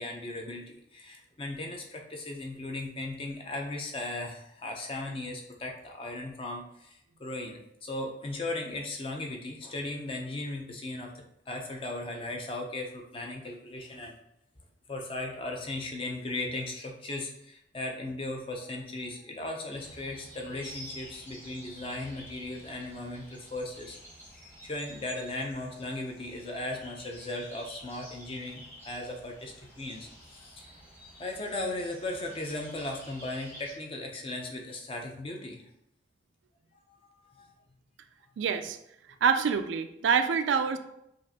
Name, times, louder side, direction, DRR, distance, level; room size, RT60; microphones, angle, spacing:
voice 1, 0.0-14.1 14.9-24.0 24.6-30.6 31.2-35.7 37.0-37.5, left 2 dB, 30° left, 1 dB, 0.5 m, -37 dB
sound 1, 19.7-33.7, equal, 10° left, 1.0 m, -50 dB
voice 2, 38.4-38.8 39.2-40.8, right 6 dB, 85° right, 9 dB, 0.3 m, -26 dB
5.1 x 2.5 x 2.7 m, 0.79 s
head